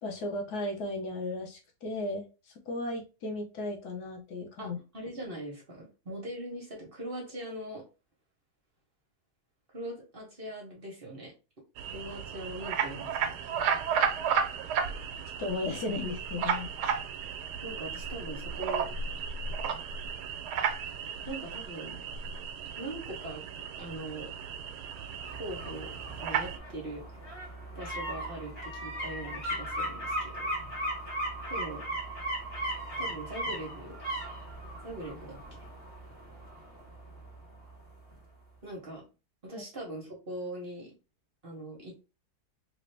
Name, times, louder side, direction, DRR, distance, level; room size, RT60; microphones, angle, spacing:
voice 1, 0.0-2.3 2.7-4.8 15.4-16.7, left 2 dB, 75° left, 1 dB, 1.4 m, -35 dB
voice 2, 4.6-7.8 9.7-11.3 11.9-13.8 17.6-18.9 21.0-22.0 22.8-23.4 23.8-24.3 25.3-25.9 26.2-27.0 27.7-30.5 31.5-31.8 33.0-34.0 34.8-35.7 38.6-39.1 39.4-40.9 41.4-42.0, right 1 dB, 40° right, -2 dB, 1.1 m, -41 dB
sound 1, 11.8-26.6, right 7 dB, 85° right, 1.2 m, -34 dB
sound 2, 24.9-37.8 38.1-38.2, right 1 dB, 40° left, 1.4 m, -38 dB
3.3 x 2.7 x 3.2 m, 0.30 s
omnidirectional pair, 1.7 m